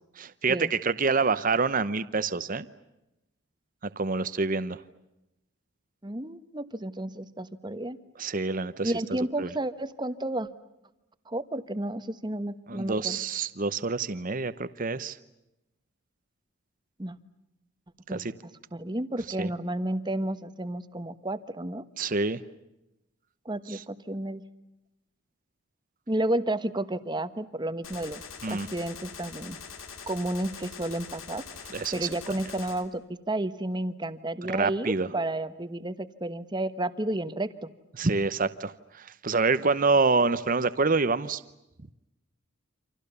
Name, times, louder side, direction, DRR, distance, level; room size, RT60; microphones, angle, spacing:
voice 1, 0.2-2.7 4.0-4.8 8.2-9.5 12.7-15.2 18.1-18.3 19.4-19.5 22.0-22.4 23.7-23.8 28.4-28.7 31.7-32.1 34.5-35.1 37.9-41.4, right 4 dB, 40° right, 13 dB, 0.9 m, -27 dB
voice 2, 6.0-8.0 8.8-10.5 11.3-13.2 17.0-17.2 18.1-21.8 23.4-24.4 26.1-28.2 28.5-29.6 30.1-31.4 31.9-33.0 33.3-37.7, right 1 dB, 20° right, 11 dB, 1.2 m, -31 dB
Gunshot gunfire, 27.8-32.8, left 6 dB, 80° left, 3.1 m, -43 dB
29.5 x 26.5 x 6.9 m, 0.92 s
head